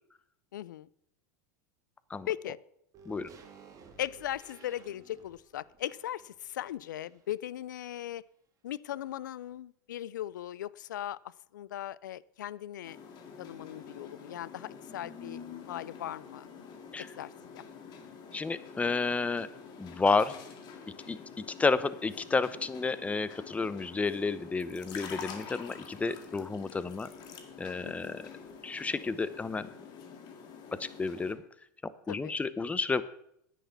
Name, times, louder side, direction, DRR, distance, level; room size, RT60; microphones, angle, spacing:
voice 1, 0.5-0.9 2.3-2.6 4.0-8.2 8.6-11.2 11.5-13.0 13.4-16.5 17.0-17.6 27.8-28.2 32.1-32.4, left 12 dB, 85° left, 21 dB, 0.4 m, -38 dB
sound 1, 2.9-7.4 7.7-7.8, right 5 dB, 35° right, 2.2 m, -56 dB
sound 2, 12.8-31.3, left 6 dB, 45° left, 2.0 m, -47 dB
voice 2, 18.3-19.5 19.8-20.4 21.1-21.2 21.6-27.1 27.6-28.2 28.6-29.7 30.8-31.4 31.8-33.0, left 4 dB, 15° left, 15 dB, 0.7 m, -31 dB
10.0 x 9.3 x 5.9 m, 0.73 s
hypercardioid pair, 100°, 10 cm